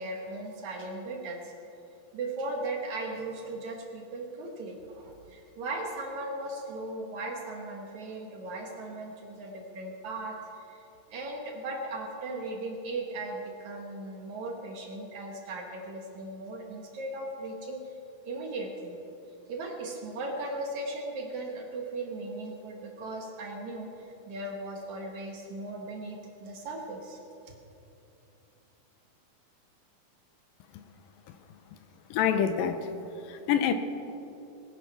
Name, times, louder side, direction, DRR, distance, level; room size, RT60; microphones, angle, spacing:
voice 1, 0.0-1.5 2.1-10.8 11.1-17.9 18.2-19.0 19.5-27.2, right 2 dB, 60° right, 1 dB, 2.5 m, -37 dB
voice 2, 32.1-32.8 33.3-33.7, left 8 dB, 80° left, 9 dB, 2.4 m, -25 dB
21.0 x 9.3 x 5.8 m, 2.8 s
omnidirectional pair, 4.2 m